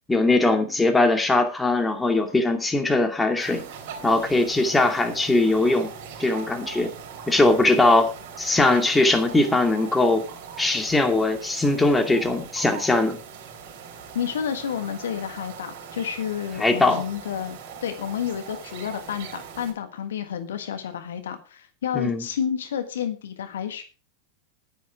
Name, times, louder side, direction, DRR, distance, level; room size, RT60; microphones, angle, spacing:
voice 1, 0.1-3.6 4.0-5.9 6.2-6.9 7.3-8.1 8.4-10.2 10.6-13.2 16.6-17.0 21.9-22.2, left 2 dB, 10° left, 5 dB, 2.3 m, -20 dB
sound 1, 3.4-19.7, right 6 dB, 50° right, 3.8 m, -41 dB
voice 2, 14.1-23.8, left 8 dB, 65° left, 8 dB, 1.5 m, -30 dB
11.0 x 10.0 x 4.7 m, 0.33 s
figure-of-eight pair, 85°, 0 cm